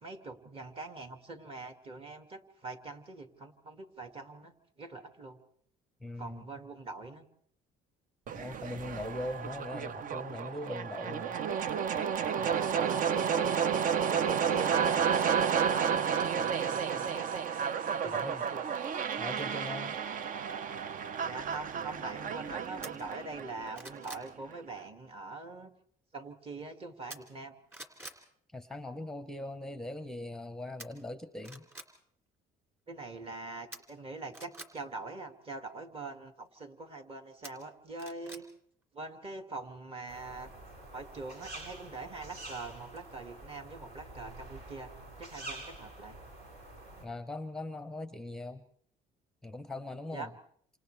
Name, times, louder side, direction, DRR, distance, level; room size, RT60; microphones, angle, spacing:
voice 1, 0.0-5.4 6.2-7.3 9.0-9.1 12.4-15.4 15.7-17.4 18.0-18.6 21.2-25.7 26.1-27.5 32.9-38.4 38.9-40.5 40.9-46.2 50.1-50.3, right 3 dB, 35° right, 6 dB, 2.2 m, -43 dB
voice 2, 6.0-6.4 8.3-11.4 18.1-18.4 19.2-20.0 28.5-31.7 47.0-48.6 49.4-50.3, left 1 dB, 5° left, 10 dB, 0.8 m, -40 dB
sound 1, 8.3-24.3, right 7 dB, 55° right, 0.7 m, -31 dB
sound 2, 22.8-22.9 23.4-24.3 27.1-27.4 27.7-28.2 30.8-30.9 31.4-31.9 33.7-34.7 37.4-38.4 38.8-38.9, right 1 dB, 15° right, 2.9 m, -46 dB
sound 3, 40.1-47.0, right 2 dB, 75° right, 7.7 m, -47 dB
28.0 x 27.0 x 3.4 m, 0.63 s
cardioid pair, 110°, 17 cm